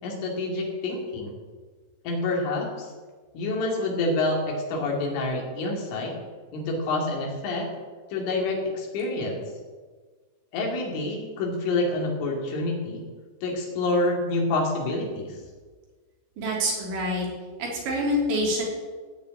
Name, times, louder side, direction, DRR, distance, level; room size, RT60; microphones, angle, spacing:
voice 1, 0.0-1.3 2.0-2.9 3.3-6.1 6.5-7.7 8.1-9.4 10.5-13.0 13.4-15.4, left 2 dB, 90° left, -1 dB, 5.1 m, -27 dB
voice 2, 16.4-17.3 17.6-18.6, equal, 70° right, -3 dB, 5.6 m, -26 dB
16.0 x 6.2 x 9.1 m, 1.5 s
omnidirectional pair, 5.4 m